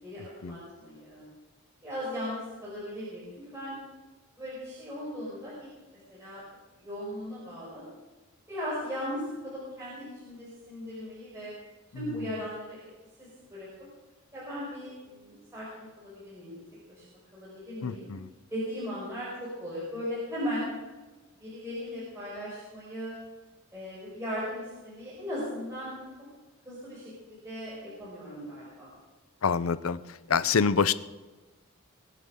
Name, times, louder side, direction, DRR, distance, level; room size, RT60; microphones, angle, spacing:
voice 1, 0.0-1.2 1.8-3.8 4.4-5.7 6.1-6.4 6.8-7.8 8.5-11.5 11.9-12.8 13.2-13.7 14.3-16.6 16.9-17.0 17.3-18.1 18.5-20.6 21.4-23.1 23.7-26.0 26.6-27.0 27.3-28.9, equal, 15° right, -8 dB, 5.0 m, -37 dB
voice 2, 17.8-18.3 29.4-30.9, left 6 dB, 85° left, 15 dB, 0.7 m, -27 dB
22.5 x 7.8 x 6.5 m, 1.2 s
head